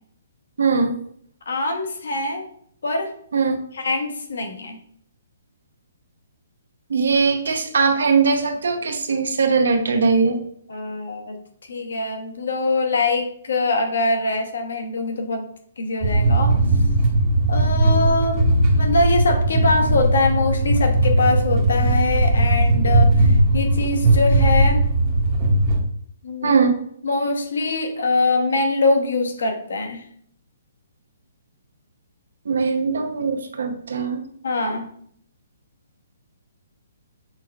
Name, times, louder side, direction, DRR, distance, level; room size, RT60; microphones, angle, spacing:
voice 1, 0.6-0.9 3.3-3.6 6.9-10.4 26.4-26.8 32.4-34.2, right 5 dB, 85° right, 5 dB, 0.7 m, -20 dB
voice 2, 1.5-2.5 2.8-3.1 3.7-4.8 10.7-11.4 11.7-15.4 15.8-16.5 17.5-24.8 26.2-26.6 27.0-30.0 34.4-34.9, left 3 dB, 75° left, 4 dB, 1.0 m, -23 dB
sound 1, 16.0-25.8, right 2 dB, 20° right, 0.6 m, -18 dB
5.9 x 3.4 x 2.3 m, 0.63 s
hypercardioid pair, 175°, 0 cm